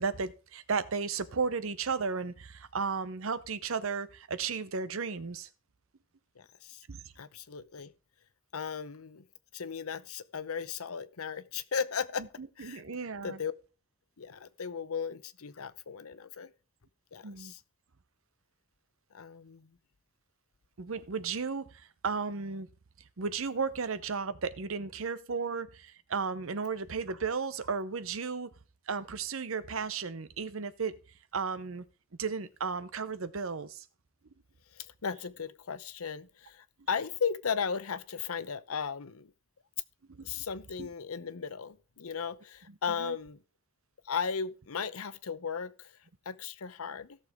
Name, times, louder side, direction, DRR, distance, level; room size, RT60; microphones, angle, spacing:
voice 1, 0.0-5.5 6.9-7.0 12.2-13.4 17.2-17.5 20.8-22.7 23.2-28.5 28.9-31.0 31.3-31.8 32.2-33.9 40.1-40.4 40.8-40.9 43.0-43.2, right 5 dB, 70° right, 0.7 m, -34 dB
voice 2, 6.4-6.8 7.2-7.9 8.5-9.2 9.5-12.3 12.6-12.8 13.2-13.5 14.2-16.5 17.1-17.6 19.1-19.7 34.7-39.3 40.2-43.4 44.0-46.0 46.3-47.2, left 6 dB, 90° left, 0.8 m, -36 dB
16.5 x 6.7 x 3.6 m
head